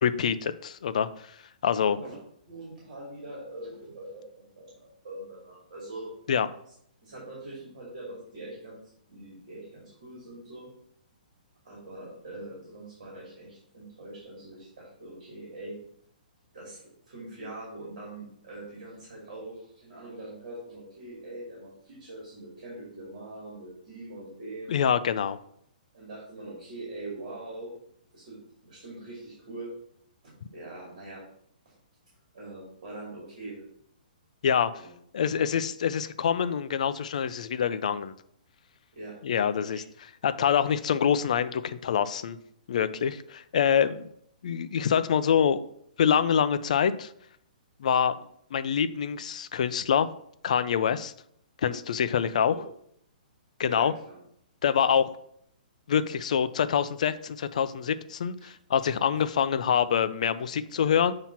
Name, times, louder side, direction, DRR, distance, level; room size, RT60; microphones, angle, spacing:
voice 1, 0.0-1.3 1.6-2.0 6.3-6.5 24.7-25.4 34.4-34.7 35.1-38.1 39.2-39.8 40.2-42.4 42.7-44.0 44.4-45.6 46.0-47.1 47.8-48.2 48.5-50.1 50.4-51.1 51.6-52.5 53.6-53.9 54.6-55.1 55.9-61.1, left 8 dB, 50° left, 12 dB, 0.4 m, -25 dB
voice 2, 2.5-6.1 7.0-8.8 9.1-10.7 11.6-15.8 16.5-24.7 25.9-27.7 28.1-28.4 28.6-29.7 30.5-31.2 31.6-31.7 32.3-33.6 34.5-34.9 38.9-39.2 39.7-39.8 52.5-52.6 53.6-54.2 58.4-58.5, right 2 dB, 50° right, -4 dB, 2.5 m, -43 dB
7.3 x 2.9 x 5.6 m, 0.69 s
hypercardioid pair, 175°, 5 cm